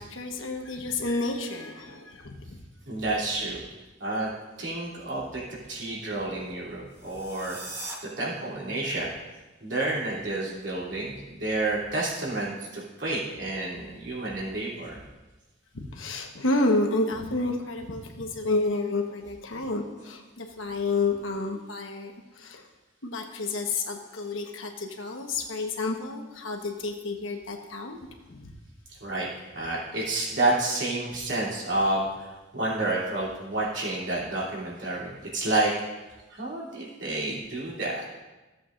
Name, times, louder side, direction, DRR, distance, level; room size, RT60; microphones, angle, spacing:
voice 1, 0.0-2.6 15.7-22.6 23.0-28.0 28.3-28.5, left 2 dB, 85° left, 3 dB, 1.2 m, -30 dB
voice 2, 2.9-3.6 4.0-4.3 4.6-5.4 5.7-7.6 8.2-9.1 9.6-15.0 29.0-29.3 29.5-35.7 36.3-38.0, right 2 dB, 60° right, -6 dB, 3.0 m, -29 dB
sound 1, 6.9-8.0, right 2 dB, 15° right, 1.2 m, -39 dB
16.0 x 7.7 x 2.6 m, 1.1 s
head